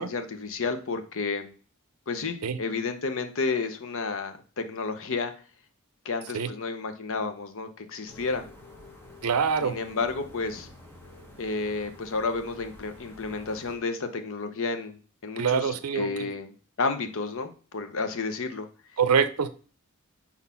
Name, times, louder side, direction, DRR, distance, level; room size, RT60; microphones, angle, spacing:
voice 1, 0.0-1.5 2.1-5.3 6.0-8.4 9.6-10.7 11.4-15.0 15.2-16.5 16.8-18.7, left 4 dB, 60° left, 8 dB, 0.8 m, -31 dB
sound 1, 8.1-13.8, left 1 dB, 10° left, 1.2 m, -49 dB
voice 2, 9.2-9.8 15.4-16.3 19.0-19.5, right 6 dB, 75° right, 13 dB, 0.6 m, -25 dB
4.4 x 4.1 x 5.7 m, 0.38 s
head